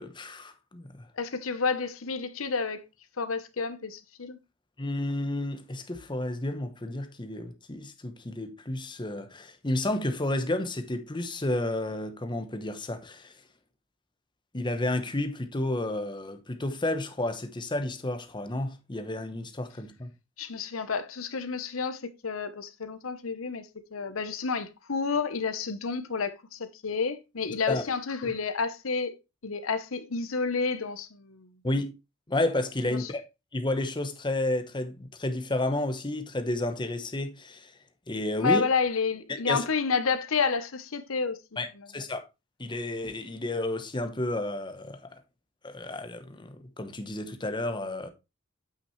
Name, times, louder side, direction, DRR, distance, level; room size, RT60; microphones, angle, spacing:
voice 1, 0.0-1.1 4.8-13.3 14.5-20.1 27.7-27.8 28.2-28.3 31.6-31.9 32.3-33.2 33.5-37.7 38.1-38.7 39.3-39.6 41.6-42.2 42.6-45.2 45.6-48.1, left 1 dB, 20° left, 0.9 m, -31 dB
voice 2, 1.2-2.8 3.2-4.4 20.4-29.2 29.4-31.5 32.9-33.1 38.4-41.4 41.8-41.9, left 5 dB, 80° left, 0.9 m, -30 dB
8.4 x 6.0 x 3.1 m
head